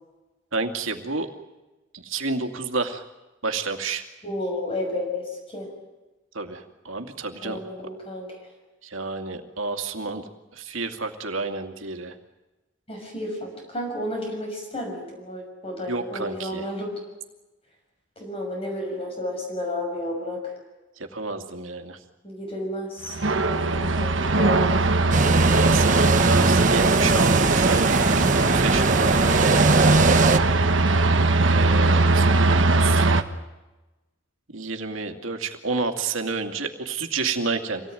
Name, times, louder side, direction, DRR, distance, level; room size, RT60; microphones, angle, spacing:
voice 1, 0.5-1.3 1.9-3.0 3.4-4.0 6.3-7.6 8.8-10.2 10.5-12.2 15.9-16.7 21.0-22.0 23.7-23.8 25.5-29.2 31.4-33.1 34.5-37.8, right 4 dB, 85° right, 5 dB, 2.5 m, -30 dB
voice 2, 4.2-5.7 7.4-8.3 12.9-16.9 18.2-20.5 22.2-24.9 30.4-30.7, left 1 dB, 30° left, 1 dB, 6.3 m, -32 dB
sound 1, 23.1-33.2, right 3 dB, 70° right, 1.4 m, -21 dB
sound 2, 25.1-30.4, right 3 dB, 40° right, 1.0 m, -20 dB
26.5 x 18.0 x 9.3 m, 1.1 s
head